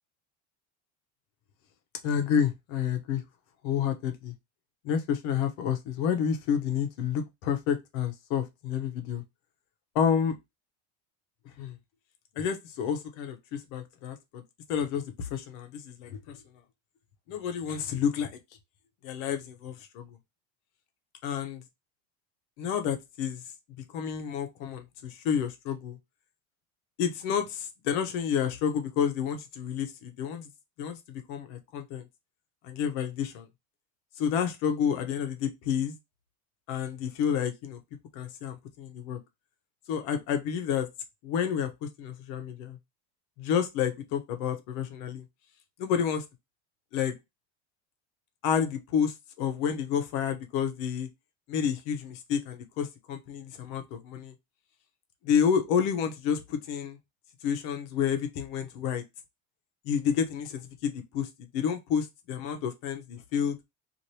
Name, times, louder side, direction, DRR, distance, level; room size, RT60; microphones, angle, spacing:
voice 1, 2.0-3.2 3.6-4.3 4.8-9.2 9.9-10.4 11.6-11.8 12.4-14.4 14.7-16.4 17.3-18.4 19.0-20.2 21.2-21.6 22.6-23.4 23.9-26.0 27.0-30.5 30.8-32.1 32.6-33.5 34.2-36.0 36.7-37.8 38.1-39.2 39.9-40.9 41.2-42.8 43.4-45.2 45.8-46.2 46.9-47.2 48.4-51.1 51.5-54.3 55.2-57.0 57.4-59.0 59.8-63.6, left 7 dB, 75° left, 0.8 m, -30 dB
3.1 x 2.6 x 2.7 m
cardioid pair, 155°, 33 cm